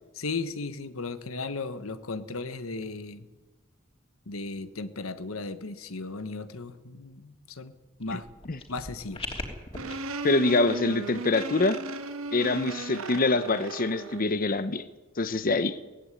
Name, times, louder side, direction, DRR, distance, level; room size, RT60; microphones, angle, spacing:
voice 1, 0.1-3.3 4.3-7.7 8.0-8.3 8.7-9.2, left 3 dB, 80° left, 11 dB, 1.2 m, -36 dB
sound 1, 8.0-9.9, left 2 dB, 25° left, 3.1 m, -39 dB
sound 2, 9.7-14.3, right 3 dB, 85° right, 1.8 m, -36 dB
voice 2, 10.2-11.8 12.3-14.8 15.2-15.8, left 2 dB, 45° left, 13 dB, 0.9 m, -25 dB
18.0 x 16.0 x 9.8 m, 1.2 s
head